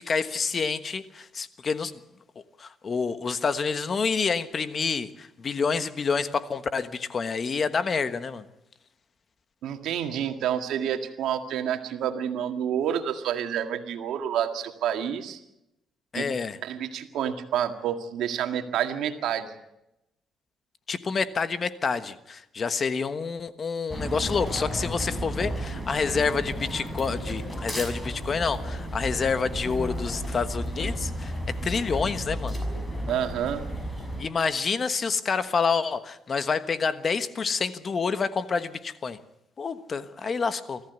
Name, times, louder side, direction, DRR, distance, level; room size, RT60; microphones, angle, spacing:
voice 1, 0.0-1.9 2.6-8.4 16.1-16.6 20.9-32.6 34.2-39.2 39.6-40.8, left 5 dB, 40° left, 12 dB, 1.3 m, -28 dB
voice 2, 9.6-15.4 16.1-16.3 16.6-19.5 33.1-33.7, right 9 dB, 80° right, 6 dB, 1.9 m, -29 dB
sound 1, 23.9-34.2, equal, 15° left, 6.3 m, -33 dB
24.5 x 14.5 x 8.1 m, 0.88 s
cardioid pair, 90°, 0 cm